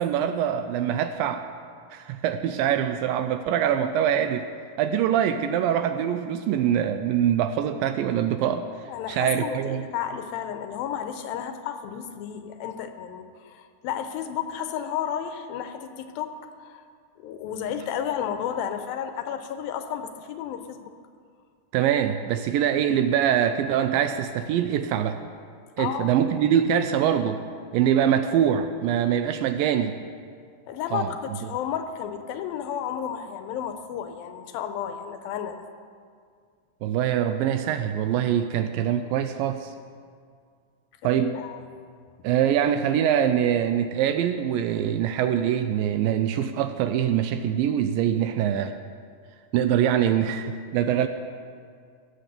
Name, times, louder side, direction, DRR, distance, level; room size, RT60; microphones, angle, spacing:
voice 1, 0.0-1.4 1.9-4.5 4.8-8.7 9.1-9.9 21.7-25.2 25.8-27.4 27.7-30.0 30.9-31.1 36.8-39.7 41.0-41.4 42.2-48.8 49.5-51.1, right 9 dB, 80° right, 9 dB, 2.1 m, -24 dB
voice 2, 8.8-16.3 16.6-16.8 17.2-20.9 25.8-26.1 30.7-35.6 41.0-41.6, left 9 dB, 80° left, 7 dB, 2.5 m, -32 dB
16.5 x 7.9 x 6.9 m, 2.1 s
omnidirectional pair, 4.4 m